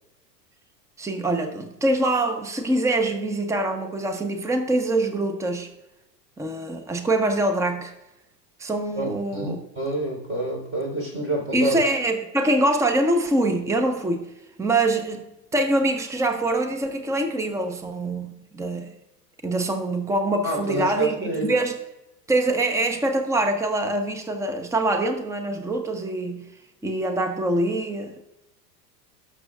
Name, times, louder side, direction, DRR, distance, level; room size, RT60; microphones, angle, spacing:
voice 1, 1.0-5.7 6.4-7.9 8.6-9.6 11.5-14.3 14.6-15.2 15.5-18.9 19.4-21.8 22.3-26.5 26.8-28.3, right 2 dB, 5° right, 6 dB, 0.9 m, -24 dB
voice 2, 9.0-11.8 20.4-21.5, right 1 dB, 25° right, -1 dB, 3.9 m, -28 dB
18.0 x 6.6 x 2.4 m, 0.93 s
hypercardioid pair, 100°, 49 cm